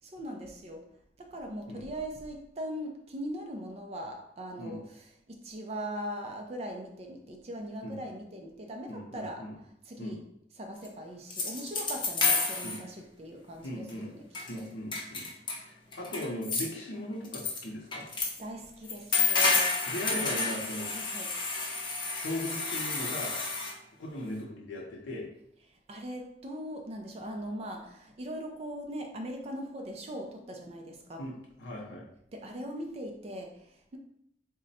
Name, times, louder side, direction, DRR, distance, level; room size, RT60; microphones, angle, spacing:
voice 1, 0.0-9.5 9.9-10.2 10.6-14.2 14.5-14.7 18.1-20.5 20.9-21.3 25.7-31.3 32.3-34.0, equal, 35° right, 3 dB, 0.4 m, -40 dB
voice 2, 8.9-9.5 10.0-10.2 12.6-12.8 13.6-14.1 14.5-15.3 15.6-18.0 19.8-20.9 22.1-23.3 24.0-25.3 31.2-31.3 31.6-32.0, left 1 dB, 80° left, -2 dB, 0.7 m, -38 dB
sound 1, 10.8-10.9 11.3-12.8 13.9-14.0 14.3-14.6 14.9-15.6 15.9-16.7 17.3-17.6 17.9-18.4 18.9-23.7, left 4 dB, 25° left, 0.6 m, -30 dB
3.7 x 2.1 x 4.0 m, 0.72 s
head